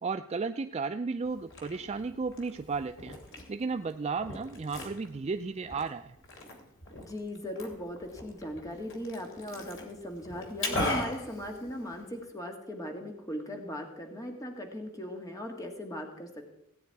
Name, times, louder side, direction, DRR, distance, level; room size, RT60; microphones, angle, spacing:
voice 1, 0.0-3.2 3.5-6.1, right 4 dB, 30° right, 8 dB, 0.4 m, -34 dB
Liquid, 1.2-12.2, left 1 dB, 60° left, 2.8 m, -39 dB
voice 2, 7.0-16.3, equal, 15° left, 3 dB, 1.7 m, -39 dB
17.5 x 9.4 x 4.7 m, 0.83 s
head